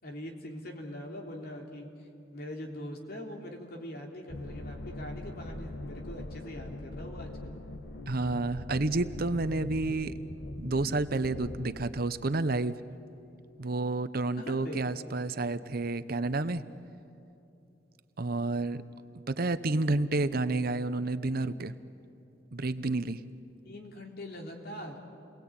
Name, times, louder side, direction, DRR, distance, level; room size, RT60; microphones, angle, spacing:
voice 1, 0.0-1.9 2.3-7.6 14.4-14.8 23.6-25.0, left 1 dB, 55° left, 1 dB, 3.5 m, -42 dB
sound 1, 4.3-11.8, left 1 dB, 75° left, 1.6 m, -42 dB
voice 2, 8.1-10.1 10.6-12.7 13.6-16.6 18.2-18.8 19.3-21.7 22.5-23.2, right 2 dB, 55° right, 12 dB, 0.9 m, -30 dB
29.5 x 21.0 x 8.9 m, 2.8 s
head